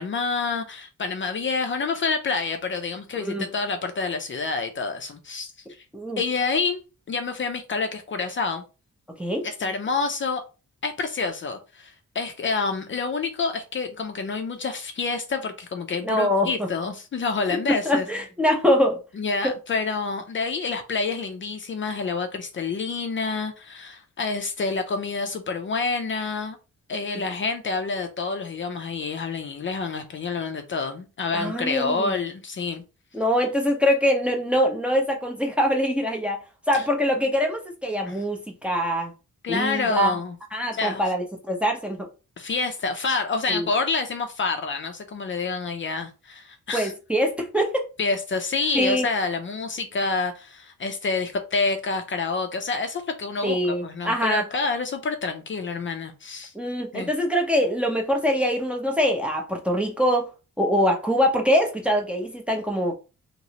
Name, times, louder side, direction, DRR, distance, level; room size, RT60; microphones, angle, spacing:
voice 1, 0.0-5.5 6.2-6.8 7.1-8.6 9.4-10.4 10.8-18.0 19.2-26.6 26.9-32.8 36.7-36.8 38.1-38.2 39.4-40.3 40.7-41.0 42.4-46.9 48.0-56.5 56.9-57.1, left 4 dB, 40° left, 0.5 m, -28 dB
voice 2, 16.0-16.7 17.7-19.0 19.4-19.5 31.3-32.1 33.1-36.4 36.7-39.1 39.5-40.2 40.5-42.1 43.5-43.7 46.7-47.9 48.7-49.1 53.4-54.4 56.5-60.3 60.6-62.9, equal, 5° right, 0.6 m, -23 dB
3.0 x 2.9 x 2.8 m
wide cardioid pair, 140°, 30 cm